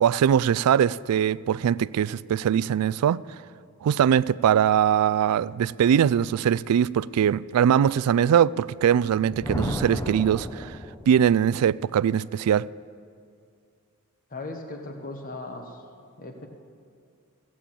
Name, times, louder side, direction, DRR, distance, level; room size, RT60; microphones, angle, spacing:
voice 1, 0.0-3.2 3.8-10.8 11.1-12.7, right 9 dB, 85° right, 0.3 m, -21 dB
Thunder, 9.1-11.4, left 1 dB, 15° left, 0.6 m, -33 dB
voice 2, 14.3-15.8 16.2-16.5, left 2 dB, 40° left, 1.2 m, -37 dB
15.5 x 8.6 x 7.5 m
head